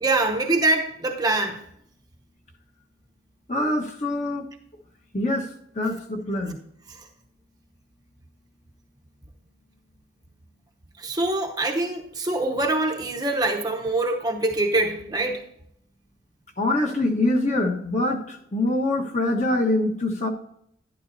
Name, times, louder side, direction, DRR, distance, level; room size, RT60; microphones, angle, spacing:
voice 1, 0.0-1.6 11.0-15.4, right 2 dB, 20° right, 3 dB, 0.8 m, -24 dB
voice 2, 3.5-4.4 5.1-5.5 5.7-6.6 16.6-20.3, left 1 dB, 35° left, 1 dB, 1.3 m, -24 dB
11.5 x 11.0 x 2.7 m, 0.71 s
head